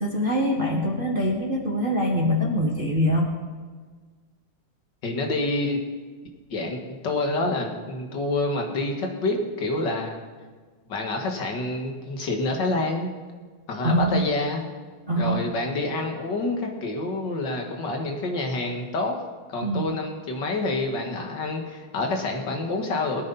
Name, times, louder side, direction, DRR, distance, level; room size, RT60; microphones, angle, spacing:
voice 1, 0.0-3.3 13.8-14.3 15.1-15.4 19.6-19.9, equal, 35° right, -1 dB, 0.9 m, -24 dB
voice 2, 5.0-5.8 6.5-10.2 10.9-13.1 13.7-14.6 15.2-19.2 19.5-23.2, left 2 dB, 40° left, 2 dB, 2.1 m, -27 dB
22.0 x 9.8 x 4.2 m, 1.4 s
omnidirectional pair, 3.5 m